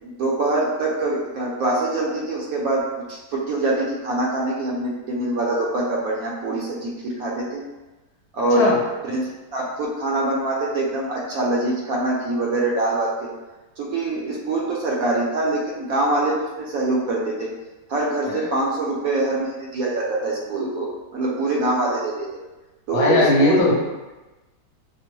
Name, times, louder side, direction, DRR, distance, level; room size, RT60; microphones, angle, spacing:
voice 1, 0.0-7.6 8.3-8.8 9.0-13.3 13.8-17.5 17.9-22.3 22.9-23.6, right 2 dB, 65° right, -3 dB, 1.0 m, -24 dB
voice 2, 22.9-23.7, left 1 dB, 70° left, -3 dB, 1.1 m, -18 dB
5.1 x 2.0 x 3.0 m, 1.1 s
omnidirectional pair, 1.8 m